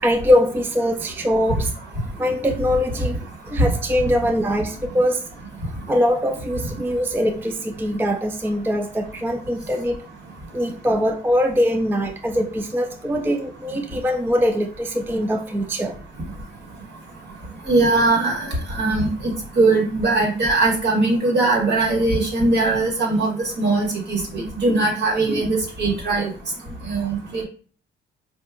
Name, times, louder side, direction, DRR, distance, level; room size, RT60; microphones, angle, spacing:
voice 1, 0.0-1.7 2.2-3.2 3.5-5.2 5.9-10.0 10.5-15.9 25.3-25.5, equal, 10° right, 5 dB, 0.4 m, -22 dB
voice 2, 17.7-26.3 26.8-27.4, right 2 dB, 60° right, -1 dB, 1.6 m, -20 dB
4.6 x 2.6 x 2.4 m, 0.40 s
cardioid pair, 90°, 20 cm